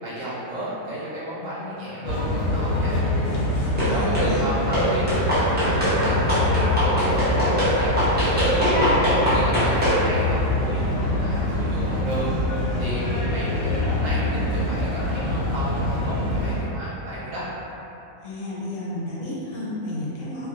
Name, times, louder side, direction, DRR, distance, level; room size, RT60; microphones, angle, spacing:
voice 1, 0.0-3.0 3.9-12.3 12.8-17.5, equal, 75° right, -9 dB, 1.0 m, -32 dB
sound 1, 2.0-16.6, left 1 dB, 90° left, 1.0 m, -24 dB
voice 2, 3.8-4.4 18.2-20.5, left 1 dB, 70° left, -7 dB, 1.0 m, -32 dB
sound 2, 3.8-4.3 4.7-10.0, equal, 15° right, 0.4 m, -22 dB
2.7 x 2.5 x 2.6 m, 3.0 s
omnidirectional pair, 1.4 m